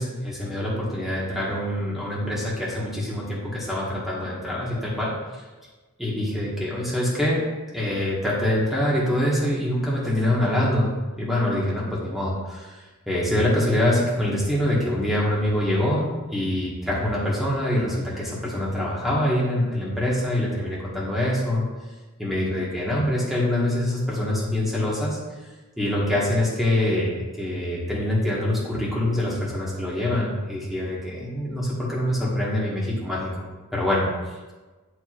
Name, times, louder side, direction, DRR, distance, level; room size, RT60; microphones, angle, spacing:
voice 1, 0.0-5.4 6.0-7.4 7.7-12.8 13.1-21.6 22.2-25.2 25.8-33.3 33.7-34.1, left 1 dB, ahead, -6 dB, 1.5 m, -25 dB
10.5 x 4.7 x 2.5 m, 1.3 s
head